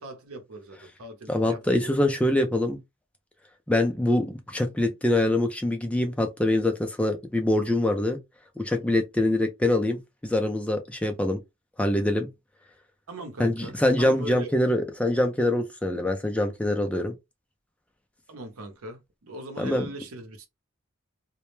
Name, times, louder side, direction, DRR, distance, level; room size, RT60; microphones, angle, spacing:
voice 1, 0.0-2.0 13.1-14.5 18.3-20.5, right 2 dB, 90° right, 0.7 m, -40 dB
voice 2, 1.3-2.8 3.7-8.2 8.6-11.4 11.8-12.3 13.4-17.2 19.6-19.9, left 1 dB, 5° left, 0.4 m, -24 dB
2.1 x 2.1 x 3.0 m
head